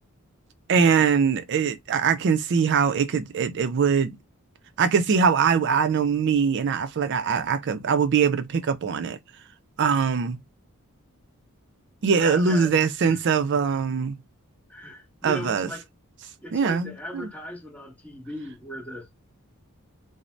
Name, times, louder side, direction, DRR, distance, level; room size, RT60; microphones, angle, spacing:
voice 1, 0.7-4.2 4.8-9.2 9.8-10.4 12.0-14.2 15.2-15.7 16.5-17.3, right 6 dB, 55° right, 0.4 m, -22 dB
voice 2, 12.1-12.7 13.0-13.2 14.7-15.8 16.4-19.1, left 1 dB, 5° left, 0.7 m, -37 dB
2.5 x 2.0 x 3.1 m
head